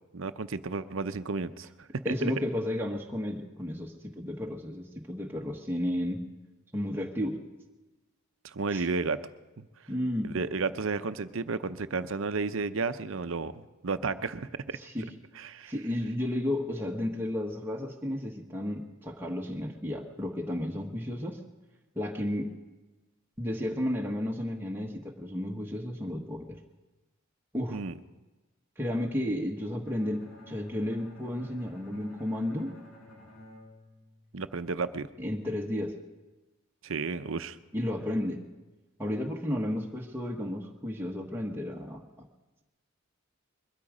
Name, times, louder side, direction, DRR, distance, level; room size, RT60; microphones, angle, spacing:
voice 1, 0.1-2.1 8.4-9.2 9.6-9.7 10.2-13.5 13.8-14.8 15.4-15.7 27.7-27.9 34.3-35.1 36.8-37.6, right 4 dB, 65° right, 12 dB, 0.7 m, -32 dB
voice 2, 2.0-6.2 6.7-7.4 8.7-8.9 9.9-10.4 14.7-15.1 15.7-21.4 21.9-22.5 23.4-26.6 27.5-27.8 28.8-32.8 35.2-36.0 37.7-38.4 39.0-42.3, left 1 dB, 10° right, -1 dB, 1.2 m, -33 dB
Bowed string instrument, 29.8-34.8, left 1 dB, 65° left, 5.4 m, -52 dB
22.0 x 13.0 x 5.0 m, 1.1 s
head